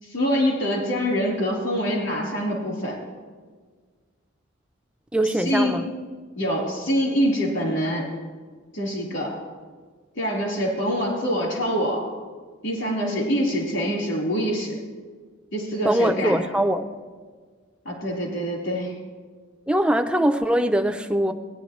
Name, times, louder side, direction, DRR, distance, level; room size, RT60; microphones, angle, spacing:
voice 1, 0.0-3.0 5.4-5.8 6.4-8.1 8.7-9.4 10.2-12.1 12.6-14.8 15.5-16.4 17.9-18.9, equal, 70° left, -2 dB, 3.8 m, -25 dB
voice 2, 5.1-5.9 15.8-16.9 19.7-21.3, right 1 dB, 5° right, 6 dB, 0.4 m, -22 dB
17.5 x 10.5 x 3.1 m, 1.5 s
head